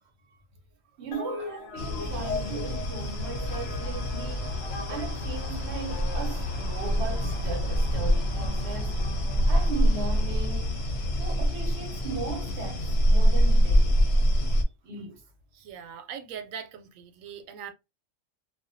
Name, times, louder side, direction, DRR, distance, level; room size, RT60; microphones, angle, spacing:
voice 1, 1.0-4.5 4.9-8.9 9.5-10.8 11.2-12.8 13.1-13.9 14.8-15.2, right 4 dB, 65° right, 0.9 m, -37 dB
sound 1, 1.1-10.9, left 5 dB, 85° left, 1.0 m, -42 dB
sound 2, 1.8-14.6, equal, 60° left, 0.8 m, -26 dB
Black Hole, 1.8-11.5, equal, 35° right, 0.4 m, -41 dB
voice 2, 15.5-17.7, right 7 dB, 90° right, 1.0 m, -41 dB
2.4 x 2.1 x 2.5 m
omnidirectional pair, 1.3 m